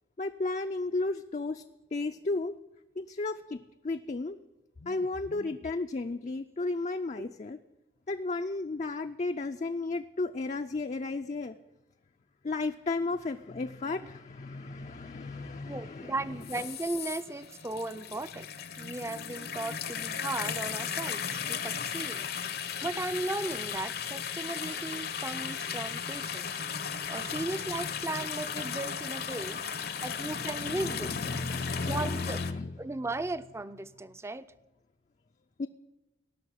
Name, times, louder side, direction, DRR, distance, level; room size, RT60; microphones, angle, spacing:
voice 1, 0.2-1.6 1.9-2.6 3.0-4.4 4.8-7.6 8.1-11.6 12.4-16.4 25.9-26.0 29.5-32.7 35.6-35.7, left 3 dB, 40° left, 7 dB, 0.4 m, -34 dB
voice 2, 15.6-18.5 18.8-22.2 22.8-26.6 27.1-29.6 30.0-31.1 31.8-32.4 32.8-34.5, right 2 dB, 15° right, 14 dB, 0.5 m, -36 dB
sound 1, 16.4-32.5, left 7 dB, 60° left, 0.8 m, -36 dB
17.0 x 6.4 x 9.8 m, 1.0 s
head